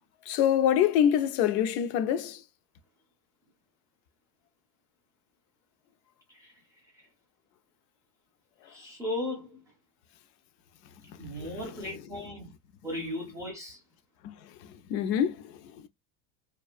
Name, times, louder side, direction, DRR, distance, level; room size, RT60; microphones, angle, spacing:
voice 1, 0.3-2.4 11.5-11.6 14.2-14.3 14.9-15.6, left 9 dB, 70° left, 0.5 m, -25 dB
voice 2, 8.6-9.6 11.2-12.5 12.8-13.8, left 1 dB, 10° right, 0.3 m, -36 dB
2.3 x 2.3 x 2.3 m
supercardioid pair, 140°, 49 cm